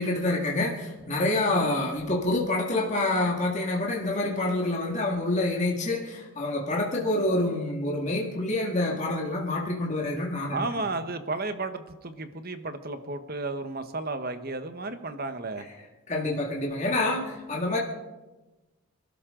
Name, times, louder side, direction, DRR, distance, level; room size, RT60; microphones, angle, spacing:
voice 1, 0.0-10.7 16.1-17.8, left 2 dB, 30° left, -2 dB, 2.1 m, -27 dB
voice 2, 10.5-15.7, right 3 dB, 45° right, 9 dB, 1.1 m, -33 dB
27.5 x 12.5 x 3.8 m, 1.1 s
head